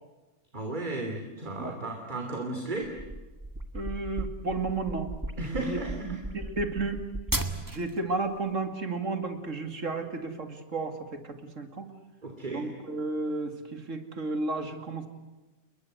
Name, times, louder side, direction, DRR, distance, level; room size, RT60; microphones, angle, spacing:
voice 1, 0.5-2.9 5.4-6.2 12.2-12.7, right 2 dB, 30° right, 3 dB, 3.1 m, -34 dB
sound 1, 2.8-8.0, right 1 dB, 15° right, 1.8 m, -35 dB
voice 2, 3.7-5.1 5.4-5.8 6.0-7.0 7.7-11.9 12.5-15.1, right 3 dB, 60° right, 7 dB, 2.8 m, -33 dB
29.5 x 22.5 x 8.0 m, 1.1 s
omnidirectional pair, 1.5 m